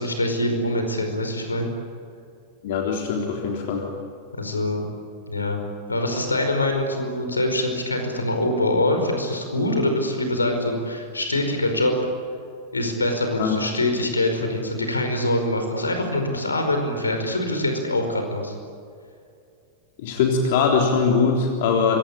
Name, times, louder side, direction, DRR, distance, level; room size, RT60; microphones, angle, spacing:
voice 1, 0.0-1.7 4.4-4.8 5.3-5.6 5.9-11.9 12.7-18.5, left 1 dB, 80° left, 5 dB, 5.0 m, -24 dB
voice 2, 2.6-3.9 13.4-13.6 20.0-22.0, left 5 dB, 55° left, 1 dB, 3.6 m, -21 dB
26.0 x 24.0 x 8.8 m, 2.4 s
figure-of-eight pair, 90°, 0 cm